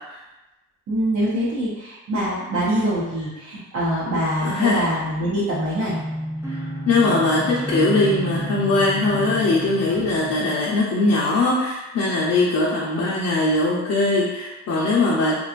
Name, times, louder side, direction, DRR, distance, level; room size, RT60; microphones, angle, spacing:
voice 1, 0.9-6.0, equal, 65° right, -9 dB, 0.9 m, -24 dB
voice 2, 4.4-4.8 6.5-15.3, left 2 dB, 60° left, -6 dB, 0.7 m, -21 dB
sound 1, 5.8-10.4, right 1 dB, 10° right, 0.6 m, -30 dB
2.9 x 2.3 x 2.4 m, 1.0 s
cardioid pair, 90°, 30 cm